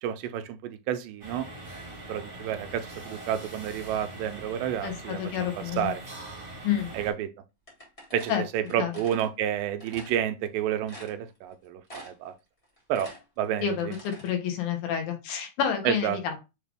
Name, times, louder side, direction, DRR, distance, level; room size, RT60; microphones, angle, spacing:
voice 1, 0.0-1.5 2.1-5.5 5.8-6.0 6.9-7.3 8.1-12.3 12.9-13.1 13.4-13.9 15.9-16.2, right 10 dB, 80° right, 2.1 m, -30 dB
sound 1, 1.2-7.1, right 2 dB, 45° right, 0.6 m, -42 dB
voice 2, 4.8-5.9 6.6-6.9 8.3-8.4 8.8-8.9 13.6-16.4, left 8 dB, 85° left, 2.8 m, -29 dB
sound 2, 7.7-9.3 9.8-10.2 10.6-10.7 10.9-11.5 11.9-12.3 12.6-14.3, equal, 55° left, 0.4 m, -46 dB
6.4 x 2.4 x 3.4 m
omnidirectional pair, 4.0 m